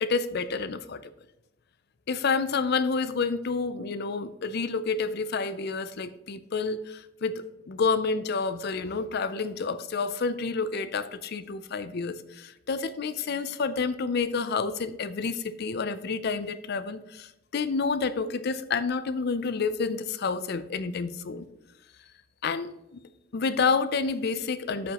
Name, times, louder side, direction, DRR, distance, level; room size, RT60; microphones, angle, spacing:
voice 1, 0.0-1.0 2.1-21.5 22.4-23.0 23.3-24.9, left 4 dB, 50° left, 13 dB, 0.5 m, -29 dB
13.0 x 5.2 x 3.0 m, 0.90 s
head